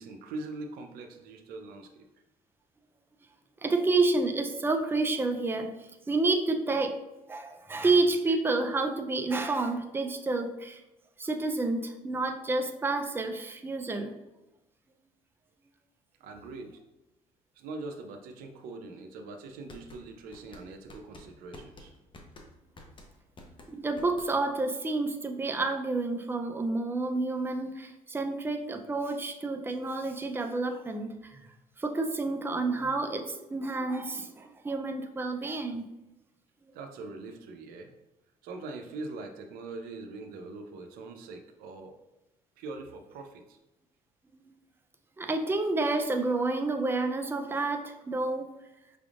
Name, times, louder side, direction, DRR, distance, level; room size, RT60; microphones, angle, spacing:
voice 1, 0.0-2.1 16.2-16.8 17.5-21.9 36.7-37.9 38.4-42.0 42.6-43.6, right 3 dB, 85° right, 5 dB, 0.6 m, -42 dB
voice 2, 3.6-5.7 6.1-7.0 7.3-10.8 11.2-14.1 23.7-31.4 31.8-35.9 45.2-48.5, right 3 dB, 15° right, 5 dB, 0.5 m, -29 dB
sound 1, 19.5-24.6, left 2 dB, 35° left, 0.9 m, -50 dB
5.7 x 3.5 x 2.4 m, 1.0 s
cardioid pair, 90°, 15 cm